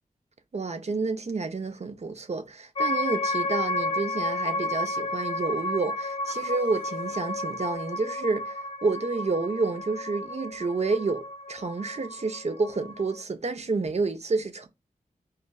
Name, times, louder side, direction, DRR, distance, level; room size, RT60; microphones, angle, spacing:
voice 1, 0.5-14.7, right 3 dB, 45° right, 0.6 m, -29 dB
sound 1, 2.7-13.2, left 2 dB, 40° left, 0.4 m, -32 dB
4.2 x 2.4 x 2.2 m
cardioid pair, 40°, 15 cm